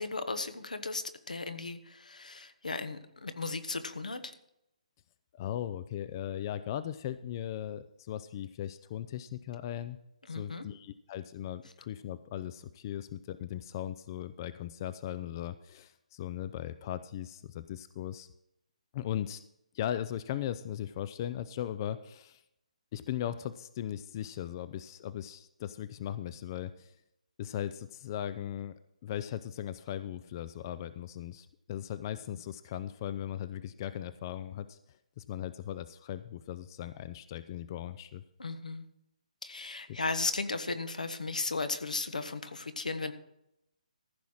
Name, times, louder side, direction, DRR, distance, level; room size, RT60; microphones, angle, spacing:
voice 1, 0.0-4.3 10.3-10.6 38.4-38.8 39.4-43.1, left 3 dB, 85° left, 10 dB, 1.3 m, -36 dB
voice 2, 5.3-10.0 10.3-18.3 18.9-19.4 19.7-22.4 22.9-26.9 27.4-28.7 29.0-34.8 35.2-38.2 39.9-40.0, left 11 dB, 35° left, 14 dB, 0.5 m, -38 dB
14.5 x 5.7 x 6.3 m, 0.79 s
hypercardioid pair, 150°, 4 cm